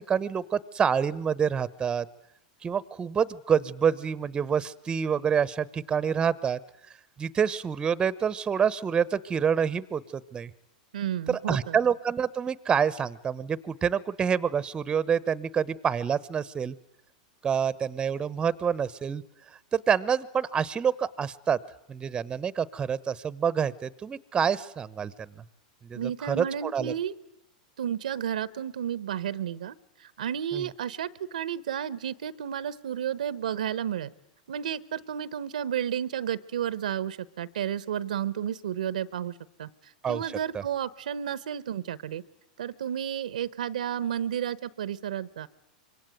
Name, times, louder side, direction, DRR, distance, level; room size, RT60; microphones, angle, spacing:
voice 1, 0.0-2.1 2.6-6.6 7.2-10.5 11.3-16.7 17.4-19.2 19.7-21.6 21.9-25.3 25.9-26.9 30.5-30.7 40.0-40.2 40.5-40.6, right 7 dB, 20° right, 19 dB, 1.0 m, -27 dB
voice 2, 10.9-11.8 25.9-27.1 27.8-34.1 34.5-42.2 42.6-45.5, right 9 dB, 80° right, 18 dB, 1.0 m, -32 dB
25.5 x 23.5 x 9.3 m, 0.78 s
hypercardioid pair, 110°, 4 cm